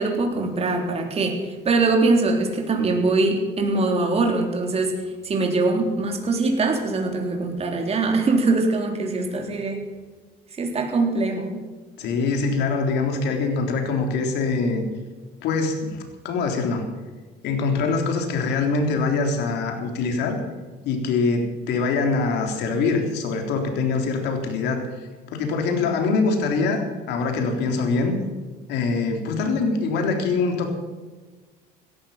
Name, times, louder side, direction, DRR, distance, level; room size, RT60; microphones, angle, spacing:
voice 1, 0.0-9.8 10.6-11.6, right 3 dB, 35° right, 2 dB, 3.7 m, -22 dB
voice 2, 12.0-14.8 15.4-16.8 17.4-20.4 20.9-24.8 25.3-28.2 28.7-30.7, left 4 dB, 85° left, 4 dB, 3.7 m, -24 dB
18.0 x 13.0 x 5.8 m, 1.3 s
cardioid pair, 110°, 17 cm